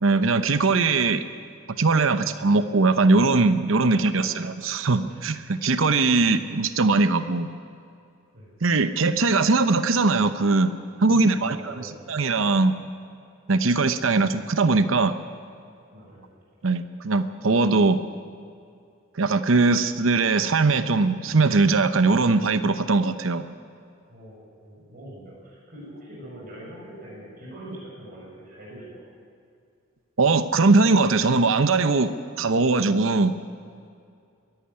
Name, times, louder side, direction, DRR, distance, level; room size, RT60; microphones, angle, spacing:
voice 1, 0.0-1.2 1.8-7.5 8.6-12.8 13.5-15.2 16.6-18.0 19.2-23.4 30.2-32.1 32.4-33.4, right 3 dB, 75° right, 11 dB, 0.8 m, -21 dB
voice 2, 11.1-12.0 15.9-16.3 24.1-29.0, equal, 45° right, -5 dB, 7.0 m, -43 dB
22.5 x 11.5 x 9.8 m, 2.4 s
head